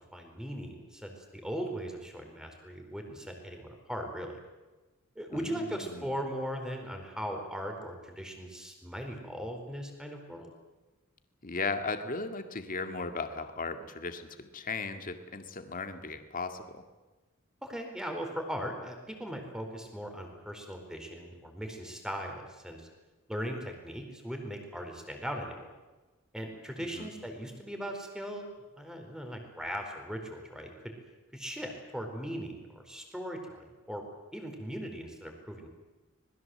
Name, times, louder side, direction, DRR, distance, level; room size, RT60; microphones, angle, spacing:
voice 1, 0.0-4.4 5.1-10.5 17.6-22.9 23.3-25.7 26.3-28.4 28.8-30.9 31.3-34.0 34.3-35.7, equal, 5° right, 4 dB, 4.4 m, -39 dB
voice 2, 5.3-6.1 11.4-16.8 26.8-27.1, left 4 dB, 40° left, 7 dB, 2.1 m, -37 dB
26.0 x 20.5 x 7.9 m, 1.2 s
head